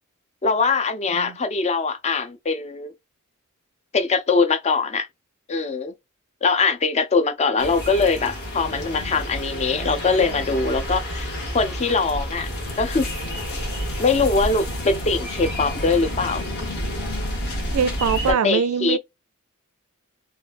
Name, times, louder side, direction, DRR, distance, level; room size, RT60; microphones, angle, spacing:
voice 1, 0.4-2.9 3.9-5.1 5.5-5.9 6.4-11.3 11.5-12.5 12.8-13.1 14.0-16.4 18.3-19.0, left 4 dB, 30° left, 0.4 m, -22 dB
sound 1, 7.6-18.3, equal, 50° left, 1.3 m, -29 dB
voice 2, 17.7-19.0, right 7 dB, 85° right, 0.4 m, -22 dB
3.2 x 2.3 x 2.4 m
head